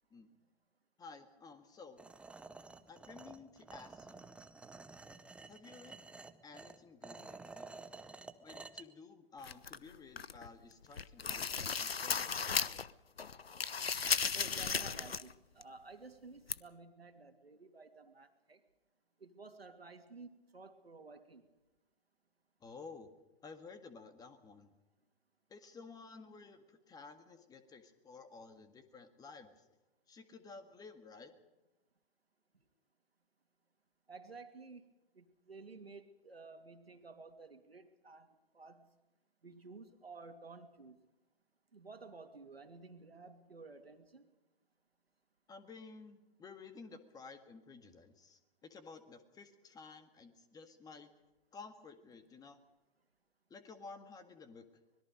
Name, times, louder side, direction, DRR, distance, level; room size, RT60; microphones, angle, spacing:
voice 1, 1.0-2.1 2.9-4.3 5.5-6.1 6.4-7.7 8.4-12.8 22.6-23.1 23.4-24.7 25.5-29.7 30.1-31.3 45.5-51.1 51.5-52.6 53.5-54.7, left 4 dB, 15° left, 9 dB, 1.9 m, -53 dB
sound 1, 2.0-8.8, right 3 dB, 5° right, 0.7 m, -52 dB
sound 2, 9.4-10.5 10.8-12.9 13.2-15.3 15.6-15.7 16.5-16.6, left 6 dB, 85° left, 0.9 m, -35 dB
voice 2, 14.3-18.6 19.2-21.4 34.1-34.9 35.1-38.9 39.4-41.0 41.7-44.3, right 4 dB, 90° right, 7 dB, 2.8 m, -53 dB
25.5 x 21.0 x 5.2 m, 1.0 s
figure-of-eight pair, 125°, 29 cm